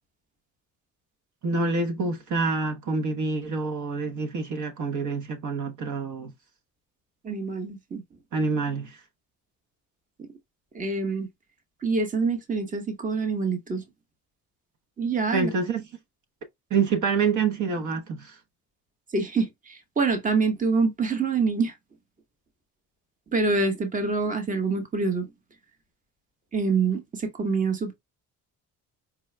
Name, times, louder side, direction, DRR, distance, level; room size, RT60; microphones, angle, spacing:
voice 1, 1.4-6.3 8.3-9.0 15.3-15.8 16.7-18.4, right 4 dB, 60° right, 1.0 m, -27 dB
voice 2, 7.2-8.0 10.7-11.3 11.8-13.8 15.0-15.5 19.1-21.7 23.3-25.3 26.5-27.9, right 4 dB, 25° right, 1.0 m, -26 dB
4.9 x 2.2 x 3.2 m
cardioid pair, 120°, 34 cm